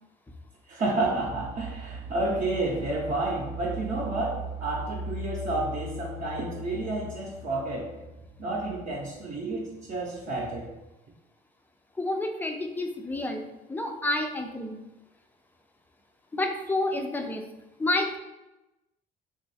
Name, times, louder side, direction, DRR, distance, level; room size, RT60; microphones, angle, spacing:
voice 1, 0.7-8.0 8.4-10.7, right 2 dB, 45° right, -3 dB, 0.6 m, -30 dB
voice 2, 12.0-13.4 13.7-14.8 16.3-17.5 17.8-18.2, left 2 dB, 10° left, 4 dB, 0.4 m, -29 dB
2.7 x 2.3 x 4.0 m, 0.98 s
cardioid pair, 110°, 17 cm